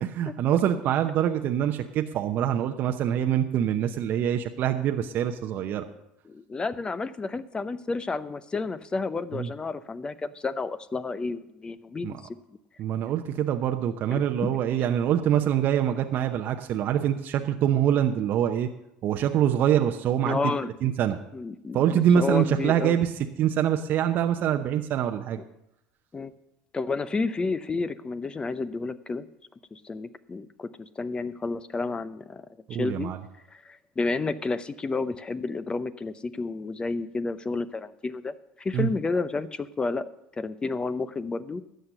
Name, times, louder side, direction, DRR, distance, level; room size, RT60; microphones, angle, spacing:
voice 1, 0.0-5.8 9.3-9.5 12.0-12.2 12.8-18.7 19.0-20.4 20.8-21.2 21.7-23.1 23.4-25.4 32.7-33.2 38.7-38.9, right 10 dB, 50° right, 6 dB, 0.8 m, -25 dB
voice 2, 6.3-12.2 14.1-14.5 20.2-20.7 21.3-23.0 26.1-26.3 26.7-29.3 29.7-32.5 32.8-33.1 33.5-40.1 40.4-41.6, left 3 dB, 25° left, 14 dB, 0.7 m, -31 dB
13.0 x 8.1 x 6.7 m, 0.83 s
hypercardioid pair, 75°, 4 cm